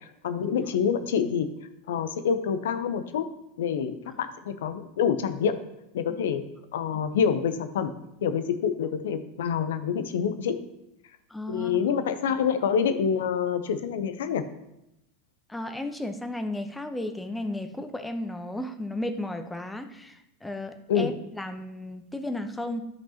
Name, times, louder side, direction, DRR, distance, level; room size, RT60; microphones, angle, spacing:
voice 1, 0.2-1.5 1.9-3.3 3.6-5.6 5.9-6.5 6.7-7.9 8.2-10.6 11.5-14.4 20.9-21.1, left 7 dB, 70° left, 11 dB, 0.7 m, -26 dB
voice 2, 11.3-11.7 15.5-22.8, left 1 dB, 10° left, 7 dB, 0.8 m, -34 dB
11.5 x 5.3 x 2.9 m, 0.87 s
hypercardioid pair, 85°, 0 cm